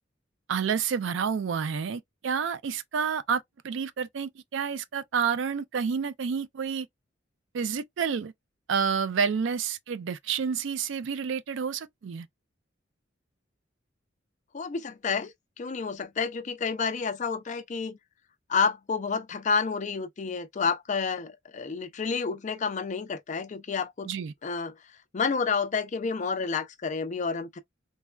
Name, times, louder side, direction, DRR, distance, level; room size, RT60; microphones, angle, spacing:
voice 1, 0.5-6.9 7.5-8.3 8.7-12.3 24.0-24.3, right 6 dB, 70° right, 0.4 m, -29 dB
voice 2, 14.5-15.3 15.6-18.0 18.5-24.1 24.4-24.7 25.1-27.6, left 5 dB, 40° left, 0.4 m, -29 dB
3.3 x 2.2 x 2.2 m
head